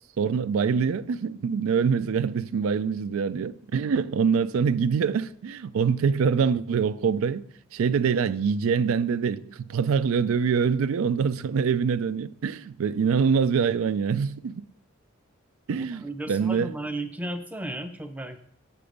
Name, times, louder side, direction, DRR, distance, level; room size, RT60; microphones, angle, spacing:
voice 1, 0.2-14.6 15.7-16.7, right 6 dB, 75° right, 0.4 m, -25 dB
voice 2, 15.7-18.4, right 1 dB, 5° right, 0.6 m, -34 dB
6.8 x 6.8 x 5.1 m
head